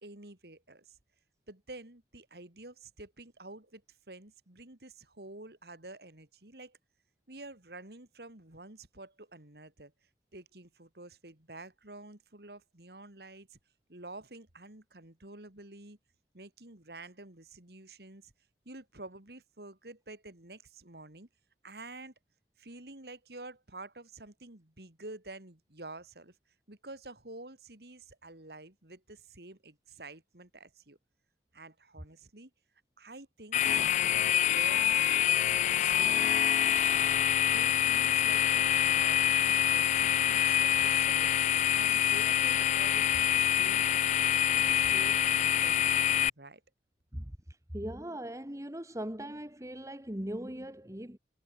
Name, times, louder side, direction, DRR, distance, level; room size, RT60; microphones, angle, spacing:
voice 1, 0.0-1.0 1.5-3.8 4.1-6.8 7.3-9.9 10.3-13.6 13.9-16.0 16.3-18.3 18.6-21.3 21.6-22.1 22.6-26.4 26.7-31.0 31.5-32.5 33.0-37.1 37.5-41.3 41.7-44.2 44.5-46.6, right 2 dB, 60° right, 3.0 m, -49 dB
sound 1, 33.5-46.3, left 11 dB, 40° left, 0.3 m, -26 dB
voice 2, 47.7-51.2, right 1 dB, 20° right, 2.2 m, -39 dB
head